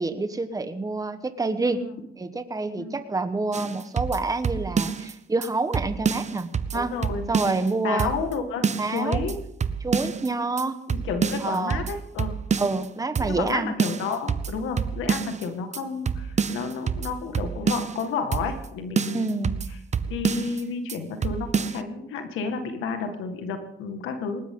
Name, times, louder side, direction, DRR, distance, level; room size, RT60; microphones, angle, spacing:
voice 1, 0.0-1.8 2.2-6.9 7.3-8.1 8.8-9.2 9.8-10.8 11.4-11.8 12.6-13.7 19.1-19.6, right 3 dB, 15° right, 9 dB, 1.3 m, -27 dB
sound 1, 3.5-5.1 5.4-5.5 5.7-7.7 8.0-8.4 8.6-10.3 10.6-10.7 10.9-12.9 13.2-13.5 13.8-15.5 15.7-15.8 16.1-18.0 18.3-18.7 19.0-20.6 20.9-21.0 21.2-21.8, right 6 dB, 35° right, 0.9 m, -28 dB
voice 2, 6.7-7.3 7.8-9.4 10.9-12.3 13.2-19.8 20.0-24.4, left 5 dB, 90° left, 6 dB, 2.0 m, -31 dB
19.5 x 18.5 x 3.9 m, 0.76 s
cardioid pair, 90°, 20 cm